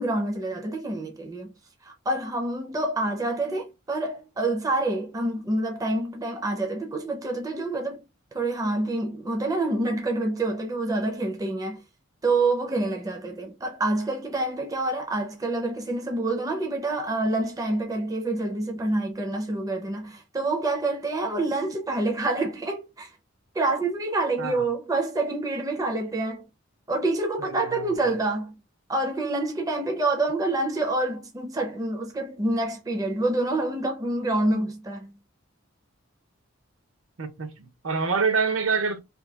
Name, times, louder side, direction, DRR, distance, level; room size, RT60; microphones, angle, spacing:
voice 1, 0.0-1.5 1.8-8.0 8.3-11.8 12.2-23.1 23.5-26.5 26.9-28.6 28.9-35.1, right 2 dB, 15° right, 0.4 m, -27 dB
voice 2, 27.4-27.9 37.2-39.0, right 5 dB, 70° right, 0.7 m, -26 dB
2.8 x 2.2 x 3.3 m
head